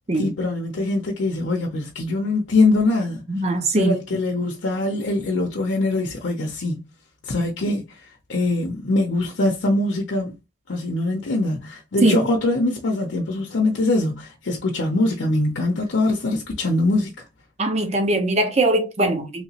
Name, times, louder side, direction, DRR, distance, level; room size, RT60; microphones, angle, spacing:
voice 1, 0.2-3.2 3.8-6.8 7.3-7.8 8.3-10.3 10.7-17.1, left 2 dB, 85° left, 0.6 m, -22 dB
voice 2, 3.3-4.0 12.0-12.2 17.6-19.4, right 2 dB, 35° right, 0.7 m, -21 dB
3.2 x 2.9 x 2.8 m
head